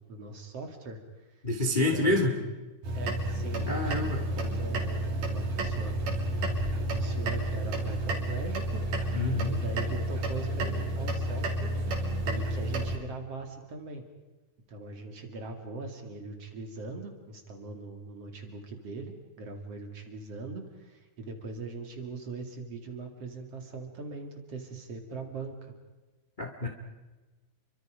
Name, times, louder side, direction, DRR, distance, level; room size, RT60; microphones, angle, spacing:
voice 1, 0.0-1.4 1.7-2.5 2.9-5.9 6.5-11.7 12.2-14.0 14.7-25.7, right 3 dB, 45° right, 4 dB, 3.0 m, -41 dB
voice 2, 1.4-2.3 3.7-4.2 9.1-9.5 26.4-26.7, left 2 dB, 20° left, 3 dB, 1.3 m, -27 dB
sound 1, 2.8-13.0, right 1 dB, 60° right, 4.5 m, -31 dB
29.5 x 24.5 x 5.1 m, 1.2 s
omnidirectional pair, 4.2 m